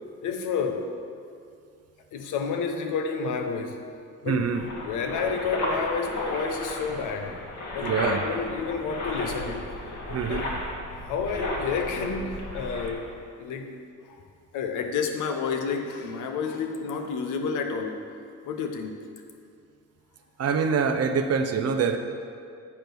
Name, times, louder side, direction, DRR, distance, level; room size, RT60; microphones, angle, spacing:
voice 1, 0.2-0.9 2.1-3.8 4.2-4.5 4.8-7.4 7.7-9.6 10.3-10.5 10.9-13.0 13.4-13.7 14.1-14.2 14.5-18.0 18.4-18.9, left 5 dB, 90° left, 5 dB, 0.9 m, -30 dB
voice 2, 4.3-4.6 7.8-8.2 10.1-10.4 20.4-22.0, right 6 dB, 55° right, 6 dB, 0.8 m, -25 dB
sound 1, 4.5-12.9, left 1 dB, 70° left, 1.8 m, -33 dB
8.5 x 5.1 x 6.1 m, 2.3 s
cardioid pair, 90°, 30 cm